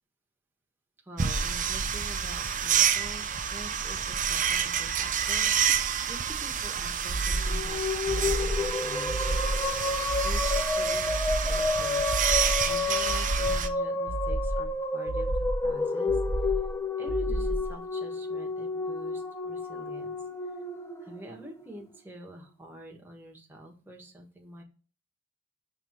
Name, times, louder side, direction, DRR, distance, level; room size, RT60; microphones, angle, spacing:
voice 1, 1.1-9.4 10.2-12.0 12.6-16.2 17.0-20.2 21.0-24.6, equal, 10° right, -1 dB, 1.3 m, -46 dB
sound 1, 1.2-13.7, right 8 dB, 40° right, 0.6 m, -29 dB
sound 2, 7.1-7.7 8.1-8.7 9.1-9.7 10.1-10.7 11.1-11.7 12.1-12.7 13.1-13.7 14.1-14.7 15.1-15.7 16.1-16.7 17.1-17.7, right 1 dB, 60° left, 1.2 m, -31 dB
sound 3, 7.3-21.8, left 3 dB, 15° left, 0.5 m, -31 dB
6.2 x 3.4 x 5.7 m, 0.36 s
head